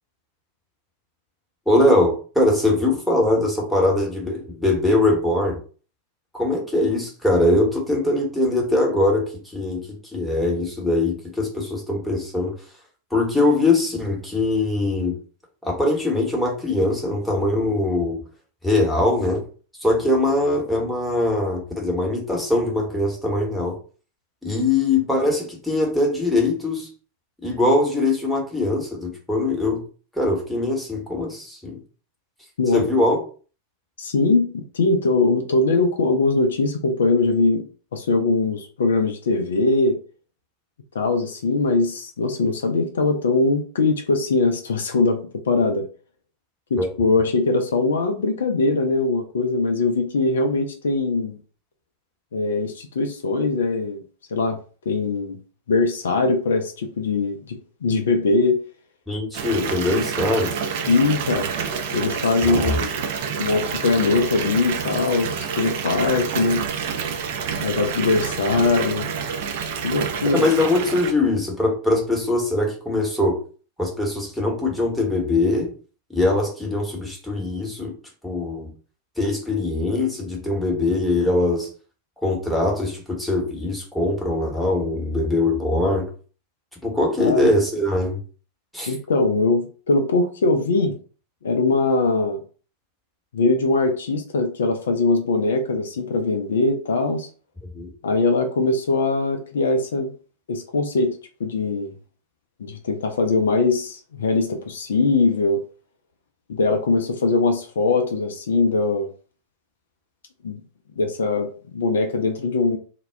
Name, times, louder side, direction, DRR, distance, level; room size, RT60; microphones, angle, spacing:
voice 1, 1.7-5.6 6.3-12.6 13.1-15.2 15.6-18.2 18.6-19.4 19.8-23.8 24.4-26.9 27.4-29.8 30.1-31.8 32.7-33.2 46.8-46.9 59.1-60.5 62.4-62.8 70.3-73.4 73.8-75.7 76.1-77.9 78.2-78.7 79.2-81.7 82.2-86.1 86.8-88.2 88.7-88.9 97.7-97.9, left 2 dB, ahead, -2 dB, 0.9 m, -22 dB
voice 2, 34.0-37.6 37.9-40.0 40.9-45.2 45.4-45.8 46.7-51.4 52.3-54.0 54.3-54.6 54.9-55.4 55.7-58.6 59.9-60.1 60.9-61.5 61.9-63.0 63.4-66.6 67.6-69.1 69.8-70.5 87.2-87.5 88.9-90.9 91.4-92.4 93.3-97.3 98.0-100.1 100.5-101.9 102.6-105.6 106.5-109.1 110.4-110.6 111.0-112.8, left 3 dB, 65° left, 5 dB, 0.4 m, -21 dB
Water tap faucet / Bathtub (filling or washing) / Fill (with liquid), 59.3-71.1, right 6 dB, 50° right, 0.4 m, -28 dB
2.1 x 2.0 x 3.3 m, 0.39 s
figure-of-eight pair, 90°, 0 cm